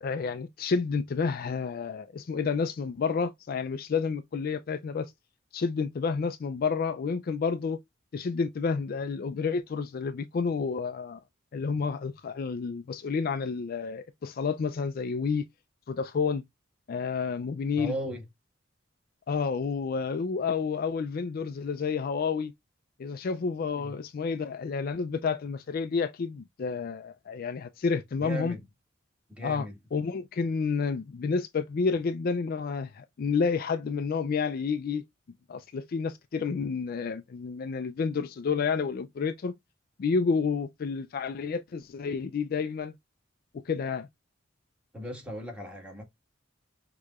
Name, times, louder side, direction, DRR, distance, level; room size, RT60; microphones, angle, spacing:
voice 1, 0.0-5.1 5.5-7.8 8.1-11.2 11.5-15.5 15.9-16.4 16.9-17.9 19.3-22.5 23.0-28.5 29.4-29.7 29.9-35.0 35.5-39.5 40.0-42.9 43.5-44.1, left 5 dB, 50° left, 0.4 m, -30 dB
voice 2, 17.7-18.3 23.8-23.9 28.2-28.6 29.3-29.8 44.9-46.0, equal, 5° right, 1.5 m, -37 dB
6.3 x 2.9 x 2.4 m
head